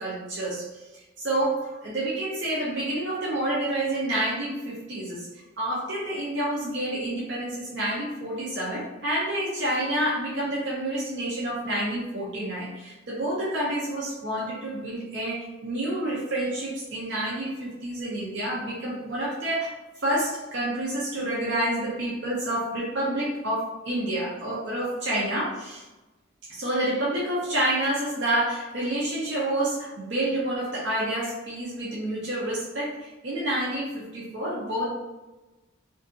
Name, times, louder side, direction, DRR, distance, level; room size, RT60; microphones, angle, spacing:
voice 1, 0.0-19.7 20.0-25.9 26.5-34.9, right 1 dB, 55° right, -6 dB, 0.6 m, -29 dB
2.7 x 2.5 x 2.4 m, 1.1 s
head